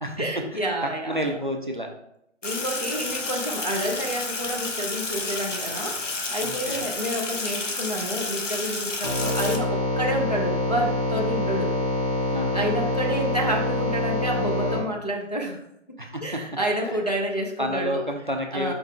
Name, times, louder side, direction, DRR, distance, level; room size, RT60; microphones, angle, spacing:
voice 1, 0.2-1.4 2.4-11.7 12.5-15.6 16.2-18.0 18.5-18.7, right 1 dB, 35° left, 0 dB, 0.5 m, -29 dB
voice 2, 1.1-1.9 6.4-6.9 12.3-12.8 16.0-16.4 16.8-17.0 17.6-18.7, equal, 45° right, 3 dB, 0.4 m, -30 dB
Sink (filling or washing), 2.4-9.6, left 3 dB, 75° left, 1.0 m, -31 dB
sound 1, 9.0-14.8, left 1 dB, 15° right, 0.8 m, -26 dB
5.1 x 4.6 x 2.2 m, 0.78 s
figure-of-eight pair, 170°, 37 cm